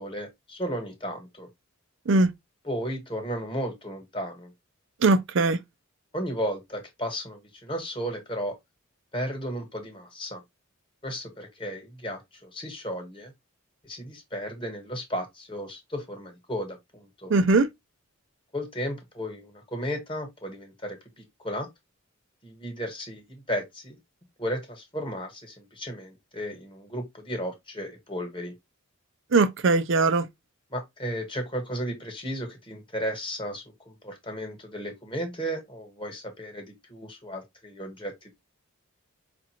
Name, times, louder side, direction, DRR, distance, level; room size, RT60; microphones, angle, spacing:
voice 1, 0.0-1.5 2.6-4.5 6.1-8.6 9.1-10.4 11.0-13.3 13.8-17.3 18.5-21.7 22.4-24.0 24.4-28.5 30.7-38.3, equal, 25° left, 1.2 m, -34 dB
voice 2, 5.0-5.6 17.3-17.7 29.3-30.2, right 3 dB, 55° right, 0.5 m, -20 dB
5.2 x 2.5 x 2.9 m
head